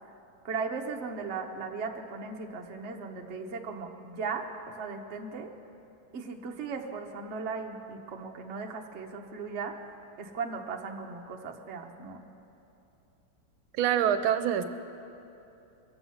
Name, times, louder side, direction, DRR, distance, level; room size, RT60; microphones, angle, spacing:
voice 1, 0.4-5.5 6.1-9.7 10.2-12.2, right 4 dB, 45° right, 2 dB, 0.9 m, -37 dB
voice 2, 13.8-14.6, right 9 dB, 80° right, 10 dB, 1.4 m, -25 dB
22.5 x 8.0 x 5.6 m, 2.9 s
omnidirectional pair, 2.2 m